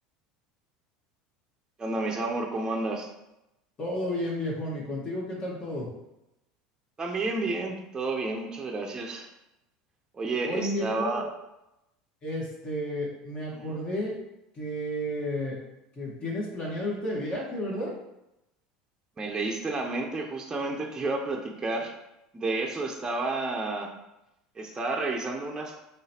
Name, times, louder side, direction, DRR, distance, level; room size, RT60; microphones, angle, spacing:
voice 1, 1.8-3.1 7.0-9.3 10.1-11.3 13.5-13.8 19.2-21.9 22.3-23.9 24.6-25.8, right 2 dB, 20° right, 1 dB, 0.6 m, -31 dB
voice 2, 3.8-5.9 10.4-11.2 12.2-14.2 14.5-15.6 16.0-18.0, equal, 30° left, -3 dB, 1.2 m, -32 dB
3.8 x 3.3 x 2.8 m, 0.89 s
supercardioid pair, 100°, 3 cm